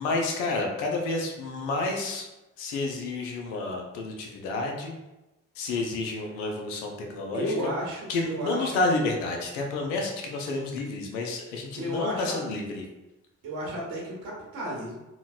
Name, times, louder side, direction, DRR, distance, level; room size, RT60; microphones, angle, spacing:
voice 1, 0.0-2.3 2.6-5.0 5.6-7.5 8.1-12.9, left 2 dB, 90° left, 1 dB, 0.5 m, -30 dB
voice 2, 7.3-8.7 11.8-12.4 13.4-14.9, equal, 75° right, -3 dB, 1.2 m, -33 dB
3.8 x 2.1 x 2.4 m, 0.99 s
hypercardioid pair, 45°, 36 cm